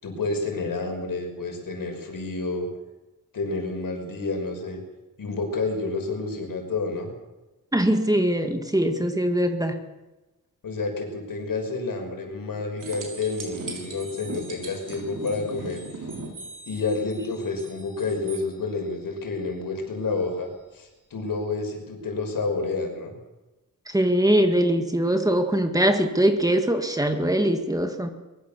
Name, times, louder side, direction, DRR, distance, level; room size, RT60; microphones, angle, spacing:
voice 1, 0.0-2.7 3.3-4.8 5.2-7.1 10.6-15.8 16.7-23.1, left 3 dB, 75° left, 3 dB, 6.1 m, -29 dB
voice 2, 7.7-9.8 23.9-28.1, right 1 dB, 10° right, 6 dB, 1.9 m, -22 dB
sound 1, 12.8-18.5 21.4-21.5, right 3 dB, 65° right, 5.8 m, -39 dB
24.0 x 22.0 x 7.2 m, 1.1 s
wide cardioid pair, 160°, 33 cm